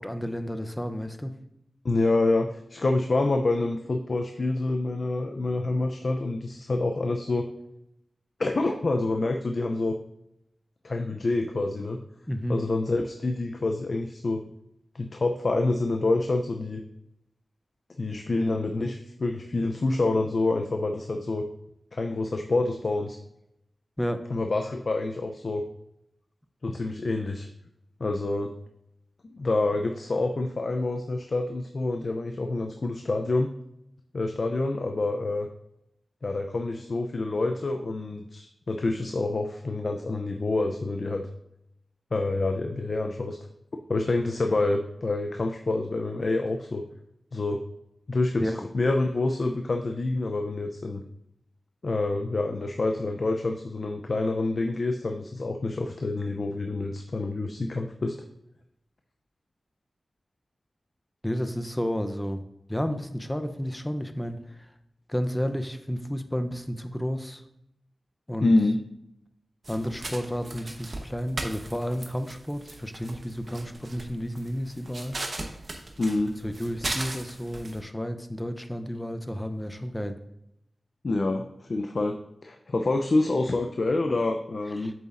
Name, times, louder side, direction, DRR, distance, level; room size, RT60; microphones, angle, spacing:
voice 1, 0.0-1.3 12.3-12.6 24.0-24.2 48.4-48.7 61.2-62.4 62.7-64.4 65.1-67.4 68.3-68.5 69.7-75.2 76.4-80.2 84.8-84.9, equal, 10° left, 9 dB, 0.6 m, -31 dB
voice 2, 1.8-7.5 8.4-10.0 10.8-12.0 12.5-14.4 14.9-16.8 18.0-21.5 21.9-23.2 24.3-25.6 26.6-27.5 28.0-28.5 29.3-33.5 34.1-35.5 36.2-41.3 42.1-43.4 43.9-46.8 47.3-47.6 48.1-51.0 51.8-58.2 68.4-68.8 76.0-76.3 81.0-82.2 82.4-84.9, left 2 dB, 55° left, 4 dB, 0.5 m, -27 dB
sound 1, 69.6-77.8, right 2 dB, 50° right, 1.0 m, -38 dB
8.2 x 6.9 x 2.5 m, 0.81 s
wide cardioid pair, 85°, 0 cm